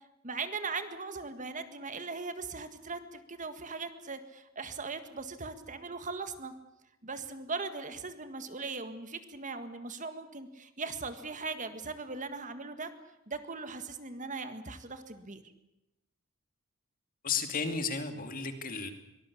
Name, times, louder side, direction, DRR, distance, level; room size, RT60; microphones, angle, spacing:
voice 1, 0.2-6.5 7.0-12.9 13.3-15.4, right 4 dB, 35° right, 10 dB, 1.7 m, -39 dB
voice 2, 17.2-18.9, left 5 dB, 40° left, 7 dB, 2.6 m, -33 dB
23.5 x 19.0 x 8.5 m, 0.93 s
head